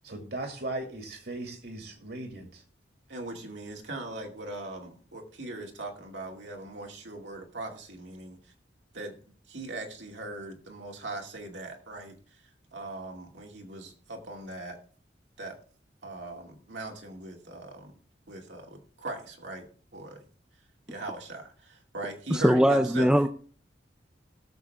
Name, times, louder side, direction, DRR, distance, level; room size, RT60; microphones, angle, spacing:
voice 1, 0.0-2.6, right 2 dB, 60° right, 2.4 m, -38 dB
voice 2, 3.1-8.4 8.9-9.1 9.5-12.1 12.7-14.8 15.4-15.5 16.0-17.9 18.3-19.7 19.9-20.2 20.9-23.2, right 2 dB, 80° right, 2.5 m, -40 dB
voice 3, 22.3-23.3, equal, 5° right, 0.5 m, -21 dB
18.0 x 7.0 x 3.5 m
head